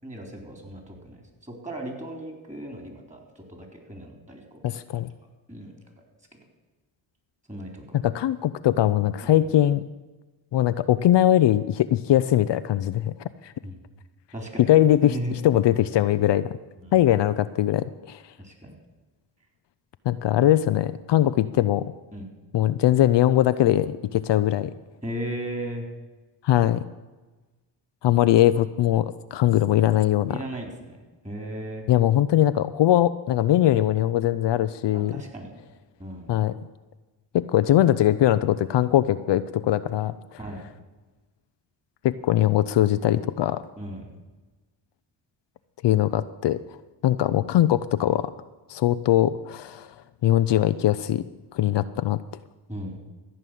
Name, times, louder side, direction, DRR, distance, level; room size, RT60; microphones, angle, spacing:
voice 1, 0.0-4.8 5.5-5.7 7.5-8.0 9.2-9.3 13.6-13.8 14.3-14.6 15.0-15.3 16.8-17.1 18.4-18.8 22.1-22.3 25.0-25.9 30.3-31.9 34.9-35.5 36.0-36.3 40.4-40.6 43.8-44.1 47.3-47.5 52.7-53.0, right 1 dB, 15° right, 2 dB, 4.0 m, -36 dB
voice 2, 4.6-5.1 7.9-9.8 10.5-13.1 13.4-13.5 14.7-15.1 15.4-16.5 16.9-18.2 20.1-21.9 22.5-24.7 26.4-26.8 28.0-30.4 31.9-35.2 36.3-36.6 37.3-40.2 42.0-43.6 45.8-46.6 47.0-48.3 48.7-49.9 50.2-51.2 51.5-52.2, left 12 dB, 65° left, 13 dB, 0.6 m, -21 dB
14.5 x 5.6 x 9.2 m, 1.2 s
cardioid pair, 60°, 46 cm